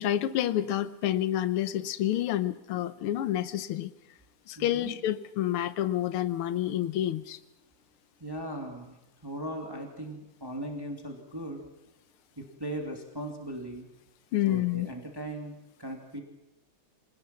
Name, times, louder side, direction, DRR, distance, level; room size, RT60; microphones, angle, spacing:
voice 1, 0.0-3.9 4.5-7.4 14.3-14.9, left 12 dB, 85° left, 13 dB, 1.8 m, -29 dB
voice 2, 4.6-4.9 8.2-8.9 9.2-11.6 12.4-13.9 14.5-16.2, right 1 dB, 10° right, 2 dB, 2.8 m, -38 dB
26.5 x 19.0 x 5.9 m, 0.96 s
omnidirectional pair, 2.3 m